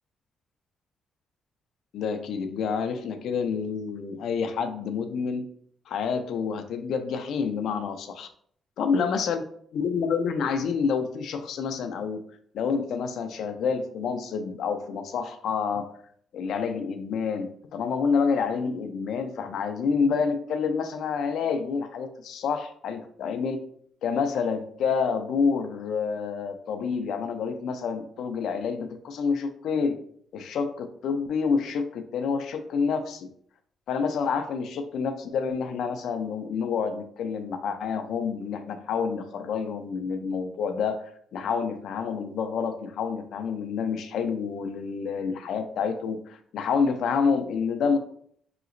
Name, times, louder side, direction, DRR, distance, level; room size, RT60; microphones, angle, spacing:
voice 1, 1.9-5.4 5.9-8.3 8.8-9.4 9.7-12.2 12.5-15.9 16.3-23.6 24.0-30.0 30.3-33.3 33.9-41.0 41.3-48.0, left 5 dB, 75° left, 8 dB, 0.5 m, -28 dB
4.8 x 2.9 x 2.5 m, 0.63 s
cardioid pair, 90°, 0 cm